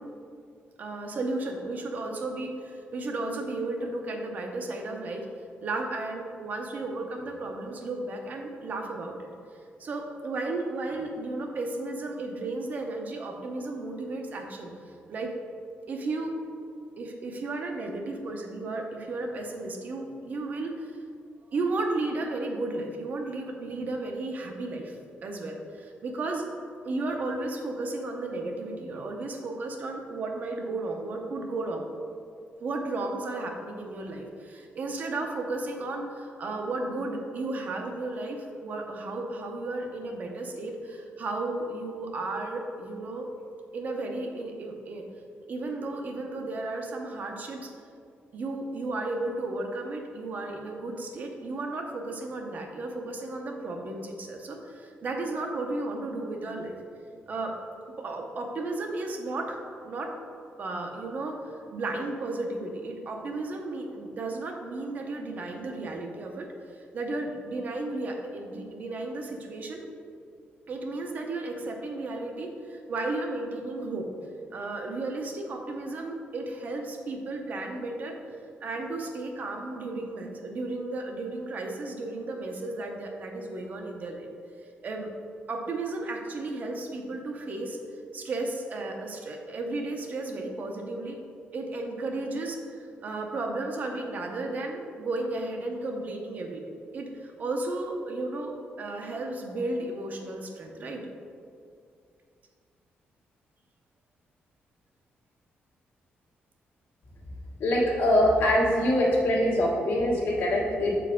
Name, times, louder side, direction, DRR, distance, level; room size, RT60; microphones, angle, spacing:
voice 1, 0.8-5.3 5.6-9.3 9.8-15.3 15.9-16.3 17.0-21.0 21.5-26.5 26.8-31.8 32.6-43.3 43.7-45.0 45.5-47.7 48.3-56.8 57.3-57.6 58.0-60.1 60.6-66.5 66.7-69.9 70.7-78.2 78.6-84.3 84.8-85.1 85.5-87.8 88.1-91.2 91.5-101.1, right 2 dB, 45° right, 2 dB, 0.6 m, -34 dB
voice 2, 107.6-111.0, left 1 dB, 65° left, -4 dB, 1.5 m, -23 dB
7.0 x 4.6 x 3.6 m, 2.3 s
wide cardioid pair, 170°, 4 cm